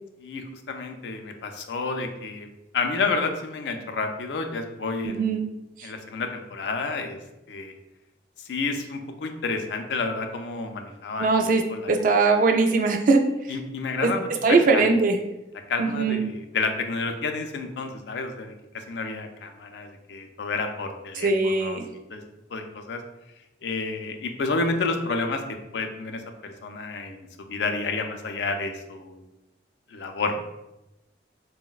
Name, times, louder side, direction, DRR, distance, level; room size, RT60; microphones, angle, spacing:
voice 1, 0.2-2.5 2.7-5.3 5.8-7.2 7.5-7.7 8.5-11.3 11.7-11.9 13.5-14.9 15.7-21.8 22.1-22.2 22.5-23.0 23.6-29.2 29.9-30.4, left 3 dB, 75° left, 6 dB, 0.4 m, -30 dB
voice 2, 5.0-5.4 5.8-5.9 11.2-13.2 14.0-14.1 14.4-15.2 15.8-16.2 21.2-21.8, right 3 dB, 50° right, 4 dB, 0.3 m, -21 dB
3.8 x 2.0 x 2.3 m, 0.96 s
head